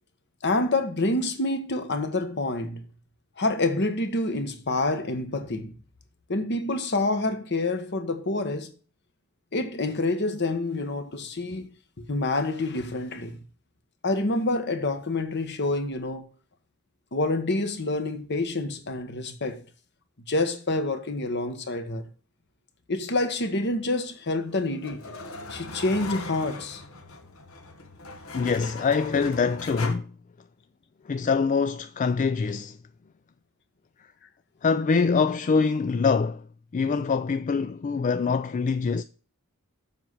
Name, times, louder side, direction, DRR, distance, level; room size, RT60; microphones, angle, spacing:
voice 1, 0.4-2.9 3.4-5.8 6.3-8.7 9.5-11.7 12.1-13.4 14.0-16.3 17.1-19.6 20.3-22.1 22.9-25.0 25.5-26.8, left 2 dB, 55° left, 1.3 m, -27 dB
sound 1, 24.1-29.9, left 3 dB, 80° left, 1.4 m, -40 dB
voice 2, 28.3-30.1 31.1-32.8 34.6-36.4 36.7-39.0, left 5 dB, 35° left, 0.4 m, -24 dB
7.4 x 5.6 x 6.3 m
head